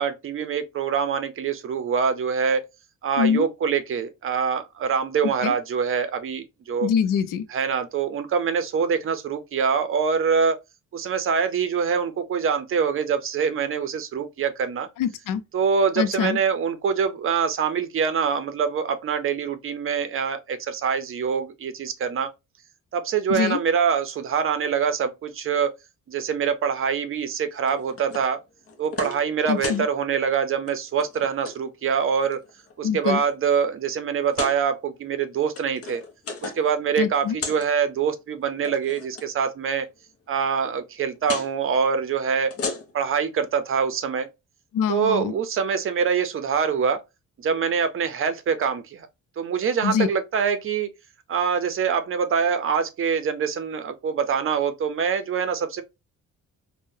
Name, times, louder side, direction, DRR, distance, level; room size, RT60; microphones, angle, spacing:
voice 1, 0.0-2.7 3.0-6.9 7.5-10.6 10.9-14.9 15.5-22.3 22.9-25.7 26.1-28.4 28.8-32.4 32.8-36.0 36.4-39.9 40.3-42.5 42.9-44.3 44.9-47.0 47.4-49.1 49.4-50.9 51.3-55.8, right 6 dB, 45° right, 0.5 m, -24 dB
voice 2, 3.2-3.5 5.4-5.5 6.8-7.5 15.0-15.4 16.0-16.4 23.3-23.6 29.5-29.9 32.8-33.2 37.0-37.4 44.7-45.3 49.8-50.1, left 8 dB, 90° left, 0.5 m, -24 dB
sound 1, 27.7-28.3 28.7-29.2 29.5-29.9 30.5-30.7 31.0-31.6 32.2-32.7 33.3-33.4 34.2-34.6 35.3-36.7 37.0-37.7 38.5-39.3 41.2-41.5 42.4-43.1, left 4 dB, 50° left, 0.6 m, -34 dB
3.7 x 2.1 x 2.6 m
cardioid pair, 140°, 31 cm